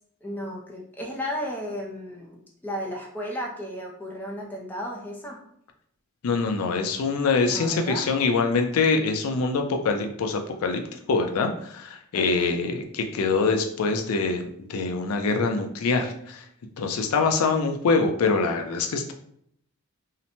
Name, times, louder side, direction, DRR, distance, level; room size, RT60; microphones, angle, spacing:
voice 1, 0.2-5.4 7.5-8.1 12.1-12.6, equal, 10° left, -2 dB, 0.4 m, -34 dB
voice 2, 6.2-10.8 11.1-16.4 16.8-19.1, left 4 dB, 80° left, 4 dB, 0.4 m, -24 dB
2.8 x 2.1 x 2.7 m, 0.68 s
head